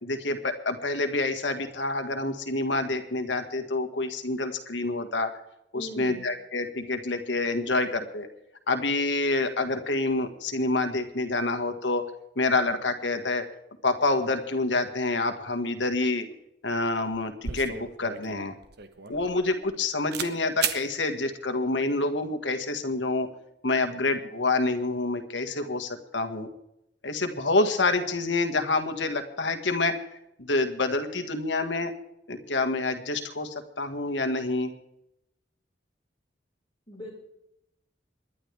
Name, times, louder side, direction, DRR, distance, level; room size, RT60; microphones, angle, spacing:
voice 1, 0.0-5.3 5.7-8.3 8.7-12.0 12.4-13.4 13.8-16.3 16.6-18.5 19.1-23.3 23.6-26.5 27.0-29.9 30.4-31.9 32.3-34.7, left 2 dB, 80° left, 6 dB, 1.8 m, -27 dB
voice 2, 5.7-6.3 36.9-37.1, equal, 25° left, -4 dB, 6.3 m, -39 dB
sound 1, 16.7-16.9 17.1-19.8 20.1-20.3 20.6-20.8, right 7 dB, 65° right, 1.2 m, -34 dB
28.0 x 11.5 x 3.5 m, 0.83 s
head